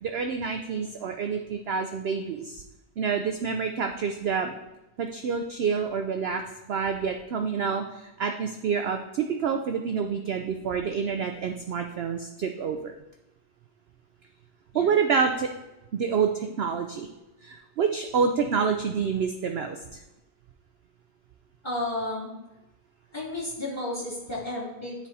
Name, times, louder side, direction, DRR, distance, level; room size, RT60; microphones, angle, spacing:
voice 1, 0.0-2.6 3.0-4.6 5.0-6.4 6.7-13.0 14.7-15.5 15.9-17.1 17.4-20.0, right 6 dB, 85° right, 5 dB, 0.5 m, -28 dB
voice 2, 21.6-22.4 23.1-24.9, left 1 dB, 15° left, -6 dB, 2.8 m, -32 dB
9.7 x 3.5 x 4.0 m, 0.98 s
omnidirectional pair, 1.6 m